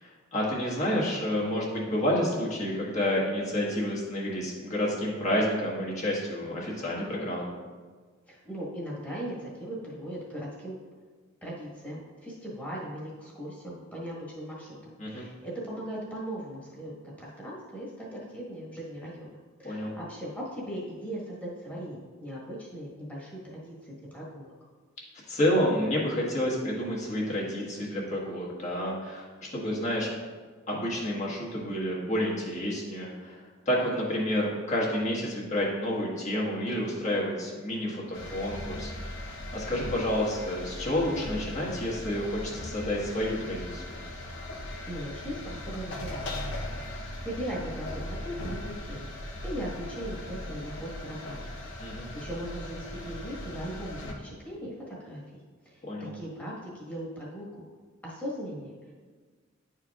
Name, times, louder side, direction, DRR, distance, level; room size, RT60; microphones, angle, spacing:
voice 1, 0.0-7.5 15.0-15.3 19.6-19.9 25.3-30.1 30.7-39.2 39.5-44.0 51.8-52.1 55.8-56.1, left 1 dB, 35° left, -4 dB, 1.4 m, -29 dB
voice 2, 8.3-10.8 11.4-16.9 17.2-24.5 44.9-46.3 46.7-46.9 47.2-49.1 49.4-51.4 51.8-55.4 55.6-55.8 56.1-57.6 58.0-58.7, equal, 10° left, -6 dB, 1.4 m, -39 dB
sound 1, 38.1-54.1, left 1 dB, 65° left, 0.9 m, -39 dB
10.5 x 4.5 x 2.4 m, 1.4 s
head